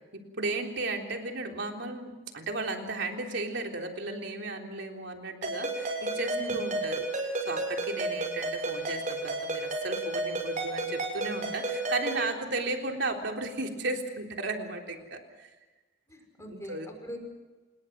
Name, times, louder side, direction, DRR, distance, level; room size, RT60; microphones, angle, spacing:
voice 1, 0.1-15.5 16.4-16.9, right 2 dB, 65° right, 2 dB, 3.6 m, -35 dB
Ringtone, 5.4-12.3, right 2 dB, 40° right, 7.0 m, -32 dB
voice 2, 16.1-17.2, equal, 15° left, 3 dB, 5.6 m, -41 dB
27.5 x 21.0 x 6.1 m, 1.2 s
head